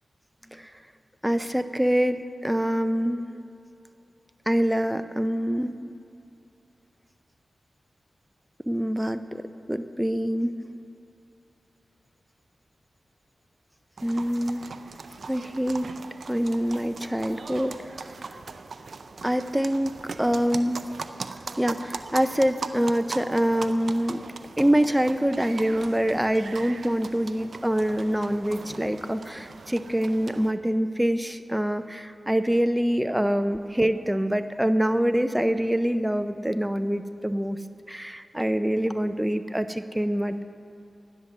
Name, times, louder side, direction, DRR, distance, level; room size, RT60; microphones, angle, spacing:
voice 1, 1.2-3.2 4.5-5.7 8.7-9.4 9.7-10.5 14.0-14.7 15.3-15.9 16.3-18.1 19.2-20.8 21.6-24.2 24.6-37.6 37.9-40.4, equal, 5° right, 9 dB, 0.6 m, -25 dB
sound 1, 14.0-30.5, right 4 dB, 70° right, 0.5 m, -40 dB
11.0 x 10.5 x 6.7 m, 2.7 s
cardioid pair, 45°, 0 cm